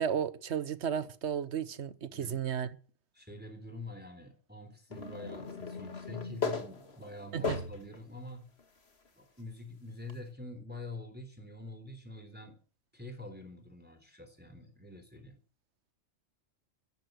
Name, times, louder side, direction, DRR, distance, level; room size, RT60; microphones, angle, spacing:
voice 1, 0.0-2.8 7.3-7.6, right 8 dB, 60° right, 1.2 m, -33 dB
voice 2, 2.1-2.4 3.1-8.5 9.2-12.6 12.9-15.4, left 2 dB, 5° right, 3.5 m, -46 dB
sound 1, 4.9-8.0 8.6-8.7 10.1-10.2, left 4 dB, 50° left, 2.2 m, -37 dB
14.0 x 11.5 x 6.5 m
omnidirectional pair, 1.3 m